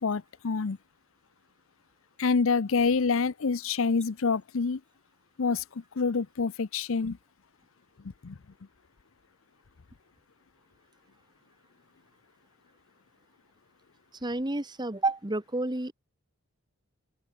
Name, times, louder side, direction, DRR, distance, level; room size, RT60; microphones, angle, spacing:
voice 1, 0.0-0.8 2.2-4.8 5.4-5.6 6.0-7.2 8.2-8.3, left 4 dB, 65° left, 0.6 m, -27 dB
voice 2, 14.2-15.9, right 2 dB, 20° right, 1.3 m, -30 dB
open air
head